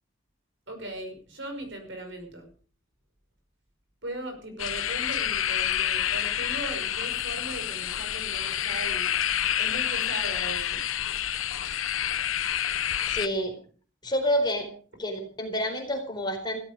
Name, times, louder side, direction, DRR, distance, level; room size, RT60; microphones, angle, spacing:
voice 1, 0.7-2.5 4.0-9.1 9.6-10.8, right 1 dB, 65° right, 5 dB, 5.7 m, -38 dB
sound 1, 4.6-13.3, left 10 dB, 85° left, 1.0 m, -28 dB
voice 2, 13.0-13.5 14.0-14.7 15.0-16.6, equal, 20° left, 3 dB, 4.4 m, -28 dB
16.5 x 14.5 x 5.1 m, 0.41 s
head